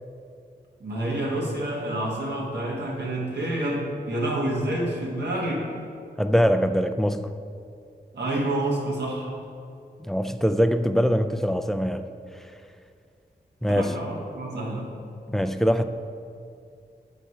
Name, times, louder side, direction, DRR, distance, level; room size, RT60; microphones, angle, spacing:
voice 1, 0.8-5.7 8.1-9.3 13.7-14.9, right 1 dB, 70° right, -2 dB, 1.3 m, -28 dB
voice 2, 6.2-7.3 10.1-12.1 13.6-13.9 15.3-15.9, equal, ahead, 9 dB, 0.3 m, -23 dB
7.2 x 4.1 x 4.8 m, 2.4 s
cardioid pair, 50°, 18 cm